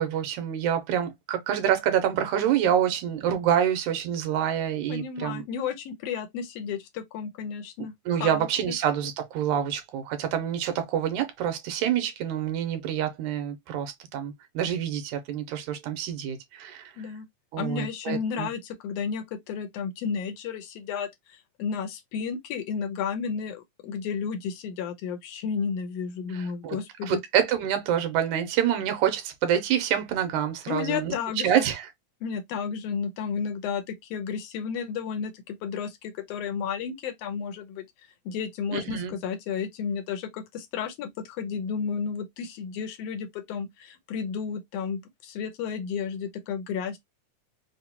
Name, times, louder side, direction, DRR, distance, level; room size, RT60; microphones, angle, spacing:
voice 1, 0.0-5.4 8.1-16.9 17.5-18.5 26.3-26.8 27.0-31.1 31.4-31.9 38.7-39.1, right 9 dB, 90° right, 2.3 m, -27 dB
voice 2, 4.9-7.9 8.2-8.7 17.0-17.3 17.6-27.2 30.7-31.6 32.2-37.8 38.2-47.0, left 6 dB, 75° left, 1.5 m, -32 dB
5.4 x 2.2 x 2.8 m
omnidirectional pair, 3.4 m